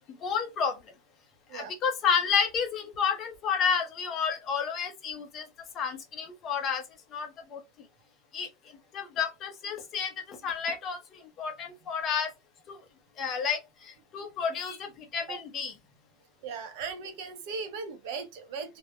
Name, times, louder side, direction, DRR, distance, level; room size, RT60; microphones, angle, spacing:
voice 1, 0.2-0.7 1.5-5.5 5.7-6.8 7.1-7.6 8.3-8.5 8.9-12.3 12.7-12.8 13.2-15.7, left 6 dB, 25° left, 0.5 m, -30 dB
voice 2, 16.4-18.8, right 5 dB, 55° right, 0.6 m, -38 dB
2.2 x 2.0 x 2.8 m
supercardioid pair, 170°, 0 cm